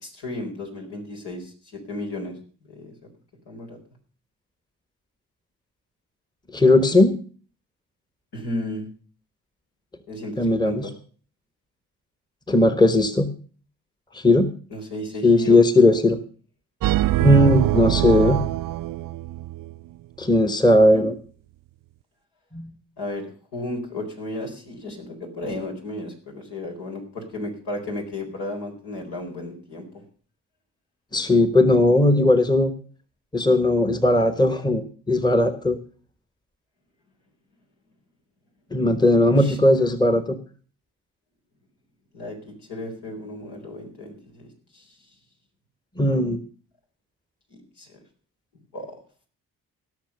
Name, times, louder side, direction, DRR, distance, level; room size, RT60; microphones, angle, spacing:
voice 1, 0.0-2.3 2.7-2.9 3.5-3.8 8.3-8.9 10.1-10.9 14.7-15.6 18.2-18.4 20.9-21.0 23.0-30.0 39.1-39.6 42.1-44.8 47.5-47.9 48.7-49.0, left 1 dB, 70° left, 1 dB, 4.4 m, -34 dB
voice 2, 6.5-7.2 10.4-10.9 12.5-13.3 14.1-14.5 15.2-16.2 17.2-18.4 20.2-21.1 22.5-22.7 31.1-32.7 33.3-35.8 38.7-40.4 46.0-46.4, left 1 dB, 10° left, 11 dB, 1.3 m, -18 dB
sound 1, 16.8-19.8, right 16 dB, 50° right, 0.5 m, -23 dB
16.5 x 6.5 x 6.7 m, 0.42 s
hypercardioid pair, 45°, 42 cm